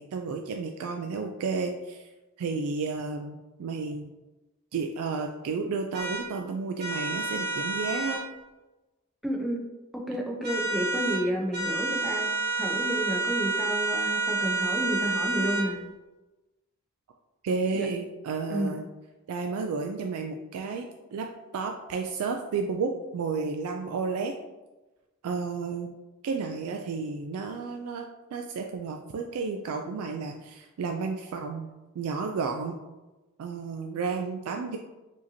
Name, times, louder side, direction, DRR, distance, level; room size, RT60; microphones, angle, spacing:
voice 1, 0.0-2.1 2.4-4.1 4.7-8.2 17.4-18.8 19.3-21.3 21.5-24.3 25.2-25.9 26.2-32.8 33.4-34.8, right 4 dB, 80° right, 3 dB, 0.3 m, -32 dB
sound 1, 5.9-6.2 6.8-8.2 10.4-11.2 11.5-15.7, right 3 dB, 50° right, 0.9 m, -29 dB
voice 2, 9.2-9.6 9.9-12.3 12.6-15.8 17.7-17.9 18.5-18.8, equal, ahead, -1 dB, 0.5 m, -31 dB
4.9 x 2.8 x 2.7 m, 1.1 s
head